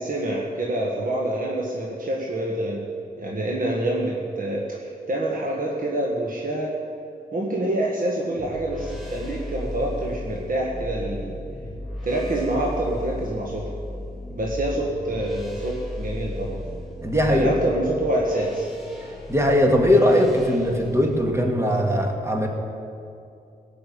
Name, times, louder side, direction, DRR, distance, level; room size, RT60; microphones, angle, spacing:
voice 1, 0.0-2.9 3.2-6.7 7.3-11.4 12.0-13.6 14.3-16.6 17.3-18.6, right 1 dB, 55° right, -3 dB, 1.8 m, -26 dB
sound 1, 8.3-21.2, left 1 dB, ahead, 2.7 m, -36 dB
voice 2, 17.0-17.6 19.3-22.5, equal, 15° right, 2 dB, 1.9 m, -20 dB
17.0 x 6.0 x 8.6 m, 2.5 s
cardioid pair, 85°, 17 cm